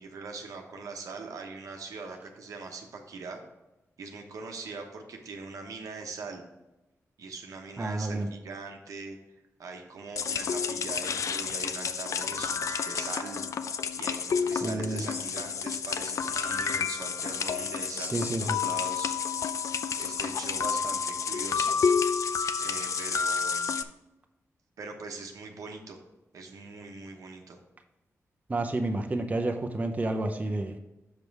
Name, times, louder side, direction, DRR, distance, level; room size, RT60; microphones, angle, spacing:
voice 1, 0.0-3.4 4.0-6.4 7.2-9.2 9.6-13.4 14.0-19.1 20.0-21.8 22.6-23.7 24.8-26.0 26.3-27.6, right 4 dB, 90° right, 3 dB, 1.1 m, -41 dB
voice 2, 7.8-8.3 14.6-15.2 17.9-18.6 28.5-30.7, right 2 dB, 25° right, 4 dB, 0.7 m, -30 dB
sound 1, 10.2-23.8, left 6 dB, 70° left, 0.4 m, -30 dB
6.6 x 5.4 x 4.7 m, 1.0 s
wide cardioid pair, 110°, 6 cm